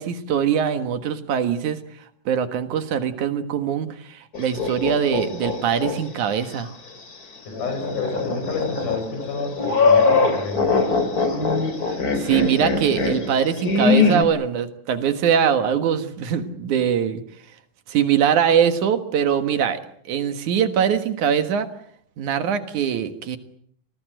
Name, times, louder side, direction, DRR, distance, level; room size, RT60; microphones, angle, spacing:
voice 1, 0.0-1.8 2.3-6.7 12.2-17.2 17.9-19.8 20.1-21.7 22.2-23.4, right 8 dB, 75° right, 9 dB, 3.0 m, -22 dB
sound 1, 4.3-6.0 6.4-6.5 7.5-14.2, left 4 dB, 30° left, 3.2 m, -22 dB
voice 2, 7.5-10.7, left 3 dB, 85° left, 6 dB, 8.5 m, -30 dB
27.5 x 19.5 x 7.9 m, 0.67 s
omnidirectional pair, 3.5 m